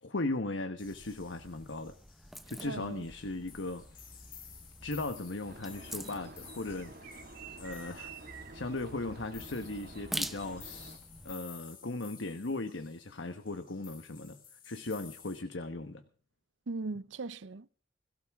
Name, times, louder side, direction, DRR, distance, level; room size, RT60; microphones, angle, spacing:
voice 1, 0.0-2.0 2.5-4.0 4.8-7.2 7.6-8.1 8.5-16.0, left 2 dB, 90° left, 1.2 m, -38 dB
sound 1, 0.8-15.4, left 8 dB, 50° left, 3.8 m, -54 dB
sound 2, 0.8-11.3, equal, ahead, 0.9 m, -46 dB
voice 2, 2.6-3.1 16.7-17.7, right 3 dB, 85° right, 0.7 m, -39 dB
sound 3, 5.4-11.0, right 3 dB, 55° right, 2.2 m, -49 dB
22.0 x 16.0 x 3.6 m
head